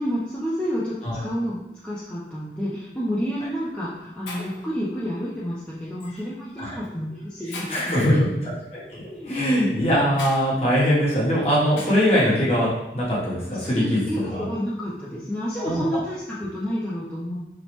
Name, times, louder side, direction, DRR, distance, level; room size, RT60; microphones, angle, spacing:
voice 1, 0.0-1.0 1.2-1.6 1.8-8.1 9.1-9.4 13.5-17.4, equal, 5° left, -9 dB, 0.3 m, -29 dB
Shatter, 3.0-3.2 3.9-4.0 4.3-4.7 6.0-6.2 6.8-6.9 7.5-8.0 10.2-10.4 11.8-12.1, left 2 dB, 90° left, 0.6 m, -37 dB
voice 2, 7.7-8.8 9.2-12.7 12.9-14.0 14.3-14.5 15.6-15.8, equal, 35° left, -7 dB, 0.9 m, -21 dB
3.0 x 2.0 x 2.9 m, 0.89 s
head